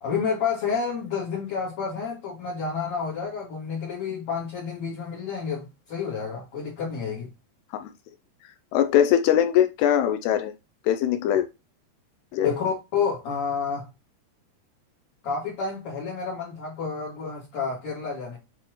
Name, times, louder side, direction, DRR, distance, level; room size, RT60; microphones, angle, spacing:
voice 1, 0.0-7.3 12.4-13.9 15.2-18.4, left 6 dB, 45° left, 2.8 m, -29 dB
voice 2, 8.7-10.5 10.9-11.5 12.3-12.5, left 10 dB, 80° left, 2.4 m, -21 dB
7.9 x 4.4 x 3.0 m
omnidirectional pair, 5.0 m